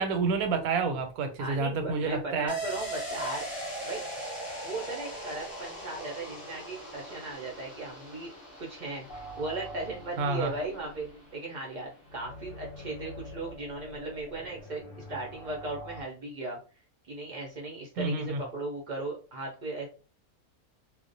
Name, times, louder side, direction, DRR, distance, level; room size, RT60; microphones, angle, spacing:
voice 1, 0.0-2.5 10.2-10.5 18.0-18.4, right 4 dB, 85° right, 7 dB, 1.1 m, -29 dB
voice 2, 1.4-3.5 3.8-4.0 4.6-8.3 8.6-14.8 15.1-16.6 17.0-19.9, right 2 dB, 60° right, -2 dB, 0.4 m, -37 dB
sound 1, 2.5-11.9 12.2-12.3, right 1 dB, 15° left, 1.0 m, -40 dB
sound 2, 9.1-16.0, equal, 65° left, 0.8 m, -46 dB
2.4 x 2.0 x 2.5 m, 0.35 s
omnidirectional pair, 1.5 m